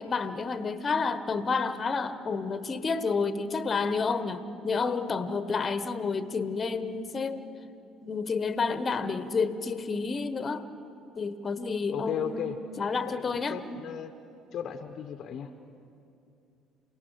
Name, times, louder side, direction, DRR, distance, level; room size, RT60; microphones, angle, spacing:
voice 1, 0.0-7.4 8.0-10.7 11.1-13.6, left 4 dB, 35° left, 12 dB, 1.2 m, -30 dB
voice 2, 11.9-12.6 13.1-14.1 14.5-15.5, left 8 dB, 55° left, 8 dB, 1.0 m, -35 dB
28.5 x 18.0 x 6.4 m, 2.6 s
hypercardioid pair, 60°, 0 cm